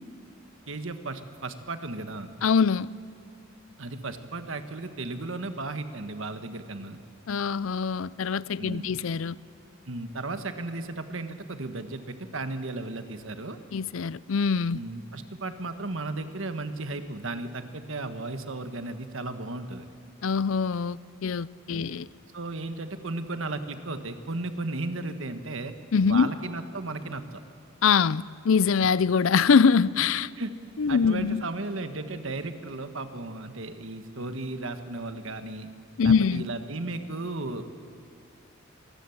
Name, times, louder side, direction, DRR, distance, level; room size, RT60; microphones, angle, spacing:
voice 1, 0.7-2.3 3.8-7.0 8.6-9.0 9.9-13.6 14.7-19.9 21.7-22.0 22.3-25.7 26.0-27.4 30.4-30.5 30.9-35.7 36.0-37.6, right 2 dB, 65° right, 1.5 m, -35 dB
voice 2, 2.4-2.9 7.3-9.4 13.7-14.8 20.2-22.1 25.9-26.3 27.8-30.3 30.8-31.4 36.0-36.4, left 5 dB, 70° left, 0.5 m, -23 dB
26.5 x 20.0 x 7.2 m
head